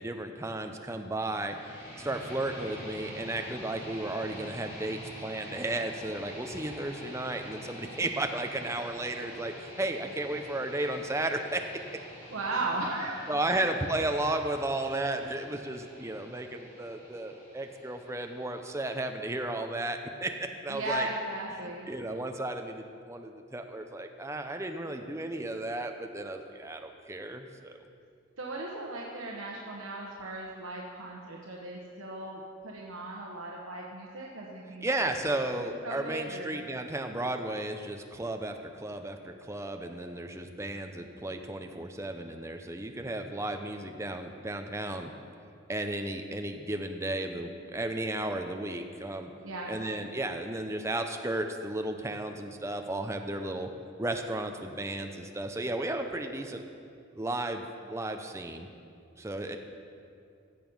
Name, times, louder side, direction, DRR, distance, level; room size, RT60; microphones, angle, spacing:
voice 1, 0.0-1.6 2.0-11.6 13.3-21.1 21.9-27.8 34.8-45.1 45.7-49.3 49.7-53.7 54.0-56.6 57.2-58.7 59.2-59.6, right 2 dB, 15° right, 5 dB, 0.7 m, -34 dB
sound 1, 1.3-19.3, equal, 40° left, 3.3 m, -47 dB
voice 2, 12.3-13.3 20.7-21.9 28.4-34.8 35.8-36.6 49.4-49.9, right 2 dB, 90° right, -2 dB, 1.1 m, -36 dB
15.0 x 6.9 x 5.4 m, 2.4 s
head